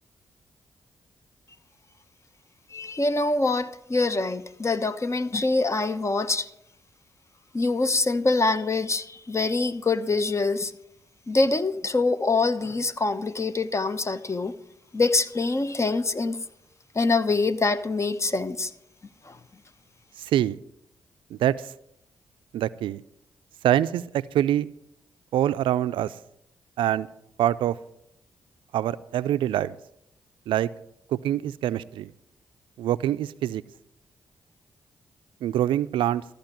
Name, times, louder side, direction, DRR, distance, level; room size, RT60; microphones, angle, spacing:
voice 1, 2.7-6.5 7.5-10.7 11.3-14.5 14.9-16.4 16.9-18.7 19.2-19.4, left 3 dB, 35° left, 0.9 m, -25 dB
voice 2, 20.2-20.6 21.3-21.5 22.5-23.0 23.6-24.7 25.3-26.1 26.8-27.1 27.4-27.8 28.7-29.8 30.5-30.7 31.1-32.1 32.8-33.6 35.4-36.2, right 12 dB, 75° right, 0.4 m, -24 dB
14.0 x 5.1 x 9.0 m
hypercardioid pair, 40°, 9 cm